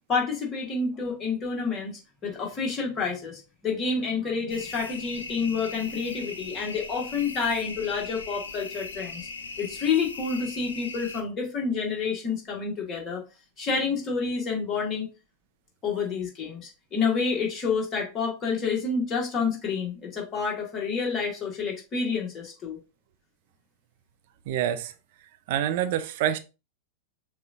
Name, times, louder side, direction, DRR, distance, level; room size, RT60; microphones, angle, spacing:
voice 1, 0.1-1.9 2.2-9.2 9.6-13.2 13.6-15.1 15.8-22.8, left 5 dB, 25° left, 1.5 m, -28 dB
sound 1, 4.5-11.2, left 4 dB, 70° left, 0.5 m, -39 dB
voice 2, 24.5-24.9 25.5-26.4, right 11 dB, 50° right, 0.5 m, -26 dB
6.6 x 2.5 x 2.6 m
figure-of-eight pair, 90°, 0 cm